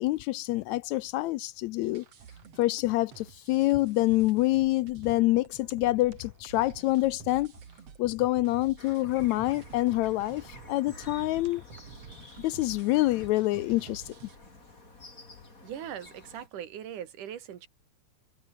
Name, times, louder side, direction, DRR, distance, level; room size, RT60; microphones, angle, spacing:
voice 1, 0.0-2.1 2.6-7.5 8.0-11.6 12.4-14.1, left 18 dB, 80° left, 1.8 m, -26 dB
sound 1, 1.8-14.4, right 7 dB, 55° right, 3.3 m, -49 dB
sound 2, 8.8-16.5, left 2 dB, 25° left, 5.5 m, -52 dB
voice 2, 15.6-17.7, right 9 dB, 90° right, 3.5 m, -40 dB
omnidirectional pair, 3.5 m